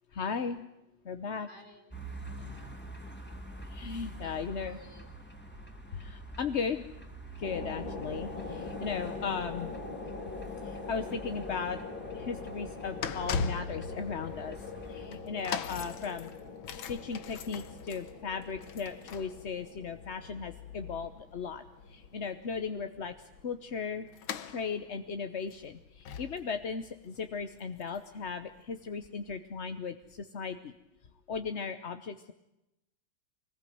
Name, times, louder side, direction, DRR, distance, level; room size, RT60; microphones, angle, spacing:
voice 1, 0.1-0.6 1.0-1.5 3.6-4.8 5.9-6.8 7.4-9.7 10.6-11.8 12.1-16.3 16.9-23.1 23.4-24.1 24.5-30.7 31.3-32.3, left 5 dB, 45° left, 9 dB, 1.0 m, -37 dB
voice 2, 1.3-2.8 4.2-5.1, left 1 dB, 25° left, 5 dB, 3.4 m, -58 dB
sound 1, 1.9-15.1, right 1 dB, 5° left, 2.7 m, -46 dB
sound 2, 7.4-22.5, left 4 dB, 65° left, 4.1 m, -43 dB
sound 3, 11.9-28.9 29.6-29.7, left 6 dB, 85° left, 2.0 m, -42 dB
25.0 x 20.5 x 9.3 m, 0.90 s
omnidirectional pair, 2.2 m